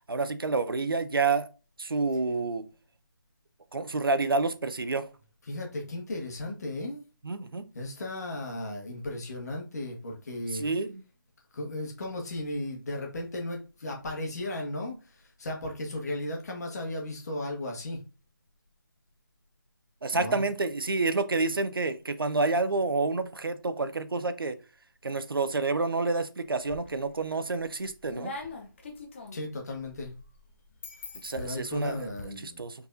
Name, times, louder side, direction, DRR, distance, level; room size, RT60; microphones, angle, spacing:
voice 1, 0.1-1.5 1.8-2.6 3.7-5.1 7.2-7.6 10.5-11.0 20.0-24.6 25.0-28.3 31.2-32.0 32.4-32.7, right 3 dB, 85° right, 0.7 m, -28 dB
voice 2, 5.5-7.0 7.7-10.6 11.5-18.0 20.1-20.4 29.3-30.1 31.4-32.6, left 1 dB, 50° left, 1.6 m, -35 dB
sound 1, 26.5-27.2 27.6-32.2, left 3 dB, 35° left, 0.8 m, -44 dB
4.5 x 4.1 x 2.6 m
figure-of-eight pair, 160°, 12 cm